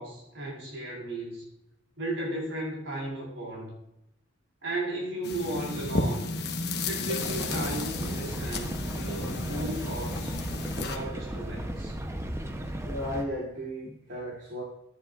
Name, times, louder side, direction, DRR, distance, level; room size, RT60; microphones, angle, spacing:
voice 1, 0.0-1.5 2.0-3.8 4.6-6.4 6.8-10.3 10.7-11.9, right 1 dB, 90° right, -3 dB, 4.1 m, -35 dB
sound 1, 5.2-11.0, left 2 dB, 60° left, 1.1 m, -33 dB
sound 2, 7.1-8.6, left 2 dB, 35° left, 0.6 m, -45 dB
sound 3, 7.2-13.3, right 1 dB, 15° right, 0.7 m, -36 dB
voice 2, 12.8-14.6, equal, 70° right, -5 dB, 2.6 m, -35 dB
14.0 x 9.7 x 2.4 m, 0.81 s
head